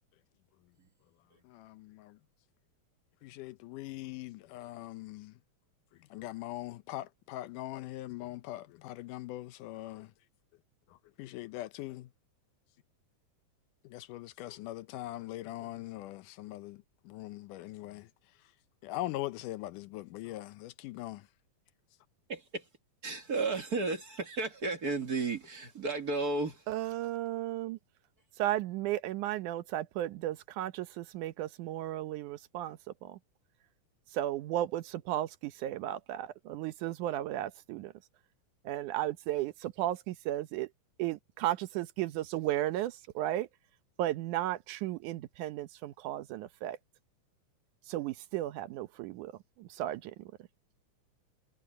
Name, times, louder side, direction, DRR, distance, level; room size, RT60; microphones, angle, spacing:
voice 1, 1.5-2.2 3.2-5.3 6.1-10.1 11.2-12.1 13.9-16.8 17.1-18.1 18.8-21.2, left 16 dB, 85° left, 2.3 m, -41 dB
voice 2, 22.3-22.6 23.0-26.6, right 3 dB, 35° right, 1.8 m, -33 dB
voice 3, 26.7-27.8 28.4-32.8 34.1-37.9 38.7-40.7 41.0-43.5 44.0-46.8 47.9-49.3 49.6-50.1, right 13 dB, 80° right, 2.3 m, -34 dB
omnidirectional pair, 3.6 m